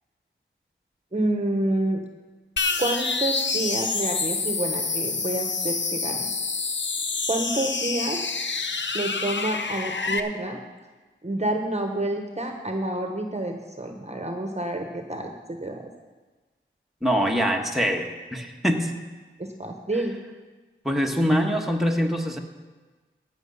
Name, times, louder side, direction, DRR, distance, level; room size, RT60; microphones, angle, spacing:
voice 1, 1.1-2.0 2.8-6.3 7.3-8.2 8.9-10.6 11.2-15.3 15.6-15.9 19.4-20.2, right 1 dB, 30° right, 4 dB, 1.1 m, -28 dB
sound 1, 2.6-10.2, left 4 dB, 60° left, 0.7 m, -27 dB
voice 2, 17.0-18.9 20.8-22.4, equal, ahead, 1 dB, 1.4 m, -24 dB
16.5 x 6.2 x 5.6 m, 1.3 s
cardioid pair, 45°, 21 cm